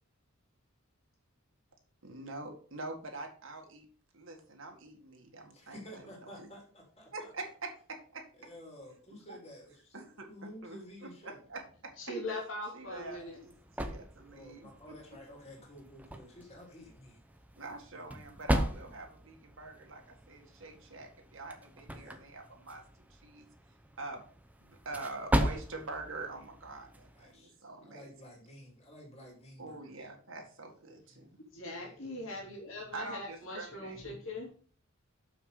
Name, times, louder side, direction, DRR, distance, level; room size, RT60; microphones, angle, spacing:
voice 1, 2.0-3.9 4.1-6.5 7.1-8.2 9.1-9.4 9.9-11.9 12.7-14.9 17.6-23.5 24.0-24.2 24.6-28.1 29.6-31.4 32.9-34.0, right 3 dB, 65° right, 2 dB, 1.9 m, -45 dB
voice 2, 5.5-7.3 8.4-10.0 10.3-11.4 14.3-17.2 17.9-18.0 21.9-22.2 27.1-30.1 31.8-32.0, equal, 30° left, -1 dB, 3.1 m, -52 dB
voice 3, 12.0-13.4 31.5-34.5, left 1 dB, 70° left, -2 dB, 2.9 m, -41 dB
sound 1, 12.8-27.4, equal, 5° right, 0.7 m, -38 dB
7.1 x 6.1 x 5.0 m, 0.42 s
head